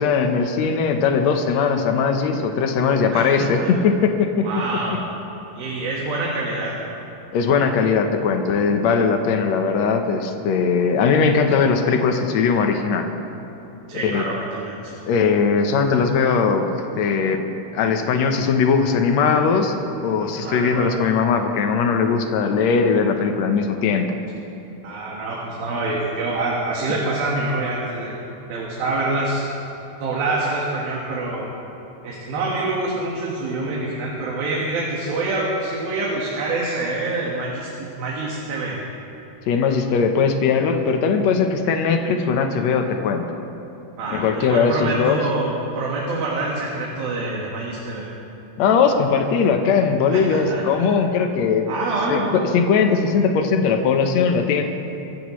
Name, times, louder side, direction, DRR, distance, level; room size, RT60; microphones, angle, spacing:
voice 1, 0.0-4.5 7.3-13.1 13.9-14.2 15.0-17.4 17.7-19.7 20.0-24.1 39.5-43.2 44.1-45.2 48.6-54.6, left 5 dB, 70° left, 5 dB, 1.7 m, -19 dB
voice 2, 3.1-3.7 4.4-5.0 5.5-6.8 13.9-15.0 20.3-21.0 24.8-28.1 28.5-29.5 30.0-31.5 32.0-38.8 44.0-48.1 50.1-50.9 51.7-52.5, right 2 dB, 80° right, -4 dB, 3.5 m, -26 dB
24.0 x 14.5 x 3.2 m, 3.0 s
omnidirectional pair, 4.2 m